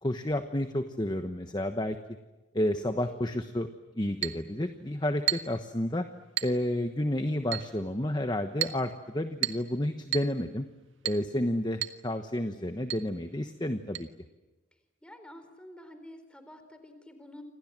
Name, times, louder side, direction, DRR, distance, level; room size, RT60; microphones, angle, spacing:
voice 1, 0.0-2.0 2.5-3.7 3.9-6.0 6.4-10.7 11.0-14.1, left 1 dB, 20° left, 7 dB, 1.1 m, -30 dB
Chink clink, 4.2-4.4 5.3-5.6 6.4-6.6 7.5-7.7 8.6-8.8 9.4-9.7 10.1-10.3 11.1-11.3 11.8-12.0 12.3-12.4 12.9-13.1 13.9-14.0, right 14 dB, 80° right, 1.6 m, -32 dB
voice 2, 15.0-17.4, left 1 dB, 5° left, 8 dB, 4.1 m, -49 dB
29.5 x 26.5 x 7.6 m, 1.1 s
head